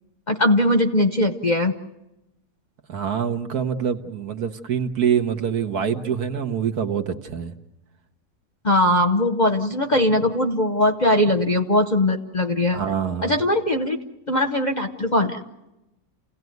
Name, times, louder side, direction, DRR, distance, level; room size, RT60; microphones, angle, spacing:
voice 1, 0.3-1.7 8.6-12.8 13.2-14.0 14.3-15.4, left 1 dB, 30° left, 5 dB, 0.9 m, -20 dB
voice 2, 2.9-7.6 12.7-13.4, right 8 dB, 65° right, 7 dB, 1.8 m, -25 dB
29.5 x 17.5 x 9.4 m, 0.95 s
omnidirectional pair, 1.8 m